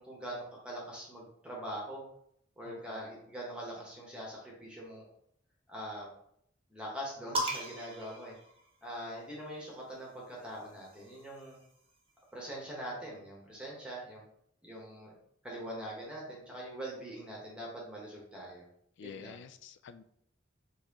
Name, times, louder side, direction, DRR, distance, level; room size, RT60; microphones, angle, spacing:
voice 1, 0.0-2.0 2.6-5.0 5.7-6.1 6.7-8.3 8.8-11.6 12.3-14.3 14.6-15.2 15.4-18.6 19.0-19.4, right 1 dB, 5° right, -3 dB, 0.9 m, -43 dB
voice 2, 2.6-3.0 19.0-20.0, left 6 dB, 60° left, 11 dB, 0.3 m, -49 dB
sound 1, 7.3-9.1 10.3-11.9, right 1 dB, 30° right, 0.8 m, -39 dB
4.2 x 3.0 x 3.5 m, 0.70 s
head